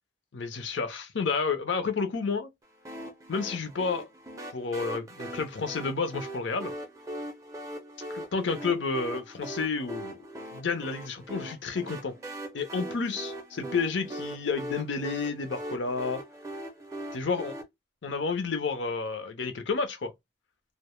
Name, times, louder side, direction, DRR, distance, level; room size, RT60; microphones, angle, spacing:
voice 1, 0.3-2.5 3.3-4.1 4.5-6.7 8.1-10.3 10.5-12.2 12.5-16.2 17.1-17.5 18.0-20.1, left 4 dB, 70° left, 0.6 m, -30 dB
sound 1, 2.8-17.6, right 1 dB, 15° right, 0.4 m, -40 dB
2.1 x 2.0 x 3.0 m
head